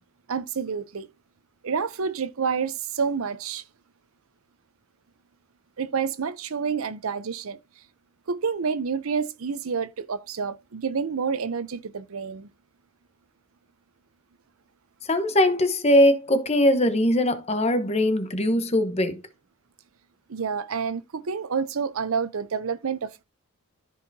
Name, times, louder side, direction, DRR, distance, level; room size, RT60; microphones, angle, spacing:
voice 1, 0.3-1.1 1.6-3.6 5.8-7.6 8.3-12.5 20.3-23.2, right 6 dB, 75° right, 0.6 m, -28 dB
voice 2, 15.0-19.2, left 1 dB, 30° left, 1.0 m, -21 dB
14.0 x 4.7 x 2.7 m
head